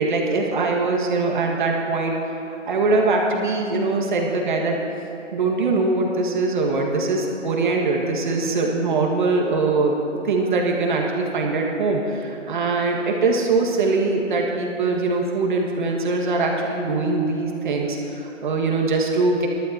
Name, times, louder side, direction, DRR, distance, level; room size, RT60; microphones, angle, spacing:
voice 1, 0.0-2.1 2.7-4.7 5.3-10.0 10.2-19.5, right 3 dB, 40° right, 0 dB, 1.8 m, -22 dB
22.5 x 12.5 x 2.9 m, 2.9 s
hypercardioid pair, 165°, 39 cm